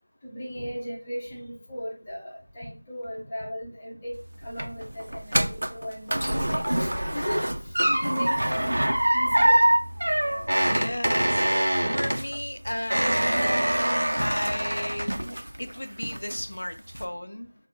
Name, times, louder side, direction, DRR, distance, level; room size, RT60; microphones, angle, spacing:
voice 1, 0.2-4.1 4.4-7.4 8.0-8.9 9.1-9.6 10.7-10.9 13.3-13.6, equal, 10° left, -6 dB, 0.5 m, -36 dB
sound 1, 4.1-15.7 16.0-16.5 16.9-17.0, right 1 dB, 85° right, 0.4 m, -24 dB
voice 2, 10.6-13.7 14.2-15.2 15.6-17.5, left 1 dB, 70° left, 8 dB, 0.4 m, -34 dB
3.6 x 2.2 x 3.6 m, 0.37 s
figure-of-eight pair, 180°, 0 cm